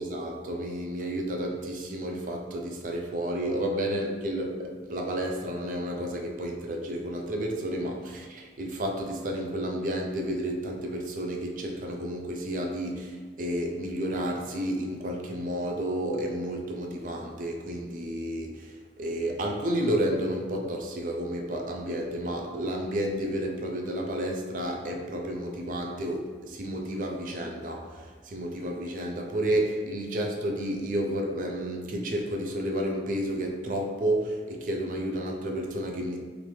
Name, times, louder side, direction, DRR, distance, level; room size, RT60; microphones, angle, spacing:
voice 1, 0.0-18.7 19.0-36.2, right 1 dB, 45° right, 1 dB, 0.4 m, -31 dB
3.1 x 2.5 x 3.3 m, 1.5 s
head